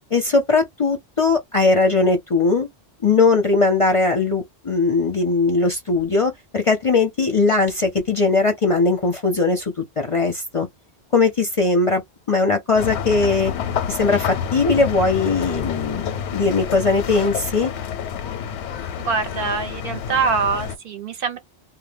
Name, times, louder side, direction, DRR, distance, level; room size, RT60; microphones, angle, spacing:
voice 1, 0.1-2.7 3.0-10.7 11.1-12.0 12.3-13.5 13.9-17.7, left 3 dB, 40° left, 0.6 m, -19 dB
sound 1, 12.7-20.8, left 8 dB, 85° left, 0.9 m, -28 dB
voice 2, 19.0-21.4, right 5 dB, 60° right, 0.8 m, -24 dB
2.1 x 2.1 x 3.3 m
omnidirectional pair, 1.1 m